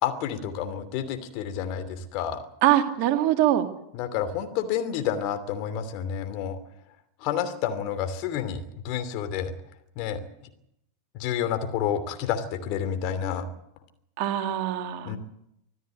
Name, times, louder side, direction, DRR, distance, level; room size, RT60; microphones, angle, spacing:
voice 1, 0.0-2.4 3.9-6.6 7.2-9.5 10.0-10.2 11.1-13.5 15.0-15.2, left 9 dB, 40° left, 9 dB, 2.8 m, -29 dB
voice 2, 2.6-3.7 14.2-15.1, right 12 dB, 45° right, 6 dB, 2.2 m, -23 dB
25.5 x 14.5 x 8.2 m, 0.79 s
figure-of-eight pair, 90°, 0 cm